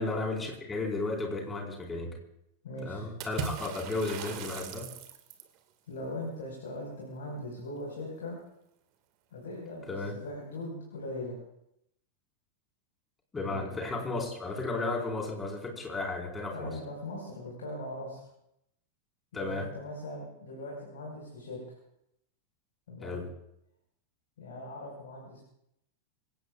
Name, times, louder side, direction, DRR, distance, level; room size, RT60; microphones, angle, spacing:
voice 1, 0.0-2.1 2.8-4.9 9.9-10.1 13.3-16.7 19.3-19.7 23.0-23.2, left 3 dB, 15° left, 0 dB, 4.7 m, -34 dB
voice 2, 2.6-3.0 5.9-8.4 9.3-11.4 13.4-13.8 16.5-18.2 19.3-21.8 22.9-23.2 24.4-25.4, left 1 dB, 60° left, -3 dB, 5.1 m, -40 dB
Water / Splash splatter, 3.2-5.6, right 7 dB, 40° right, 2.0 m, -39 dB
26.0 x 17.5 x 2.5 m, 0.80 s
figure-of-eight pair, 90°, 0 cm